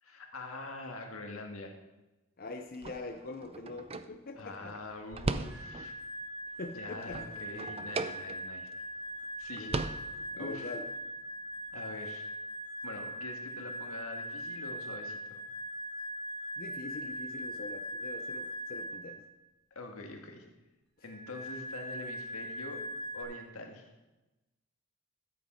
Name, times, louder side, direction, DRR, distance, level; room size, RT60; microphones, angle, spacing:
voice 1, 0.0-1.7 4.4-5.9 6.7-8.7 9.4-9.7 10.4-10.7 11.7-12.3 12.8-15.4 19.8-20.5 21.0-22.8 23.1-23.9, left 2 dB, 80° left, 2 dB, 1.8 m, -44 dB
voice 2, 2.4-4.8 6.6-7.4 9.6-9.8 10.3-10.9 16.6-19.2, left 3 dB, 45° left, 4 dB, 0.6 m, -43 dB
sound 1, 2.7-6.0 6.5-8.7 9.1-9.2 9.4-10.6, right 3 dB, 30° right, 0.4 m, -38 dB
sound 2, 5.4-19.1 21.0-23.2, equal, 5° left, 2.7 m, -41 dB
13.0 x 8.4 x 4.3 m, 1.1 s
head